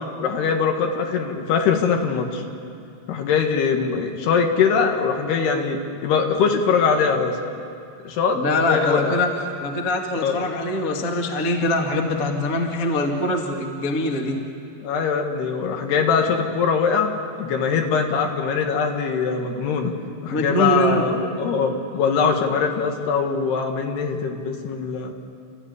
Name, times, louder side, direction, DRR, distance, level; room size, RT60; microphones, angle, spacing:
voice 1, 0.2-2.4 3.1-7.4 8.1-9.1 10.2-10.4 14.8-19.9 20.2-25.1, left 5 dB, 70° left, 3 dB, 3.6 m, -22 dB
voice 2, 8.3-9.3 9.6-14.4 20.3-21.1, left 1 dB, 30° left, 1 dB, 1.5 m, -23 dB
29.0 x 14.5 x 9.7 m, 2.5 s
omnidirectional pair, 4.9 m